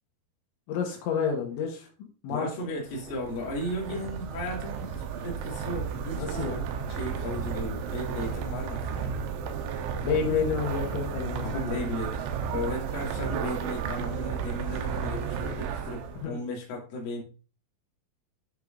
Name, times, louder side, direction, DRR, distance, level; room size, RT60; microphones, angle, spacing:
voice 1, 0.7-1.9 2.2-2.5 3.9-4.0 6.1-6.6 10.0-11.8 16.2-16.4, left 6 dB, 85° left, 1 dB, 3.7 m, -29 dB
voice 2, 2.3-6.5 6.9-9.1 11.4-12.2 12.5-17.2, left 1 dB, 55° left, -2 dB, 3.8 m, -35 dB
sound 1, 2.8-16.3, right 6 dB, 85° right, 3.2 m, -33 dB
10.5 x 6.5 x 2.5 m, 0.35 s
omnidirectional pair, 5.2 m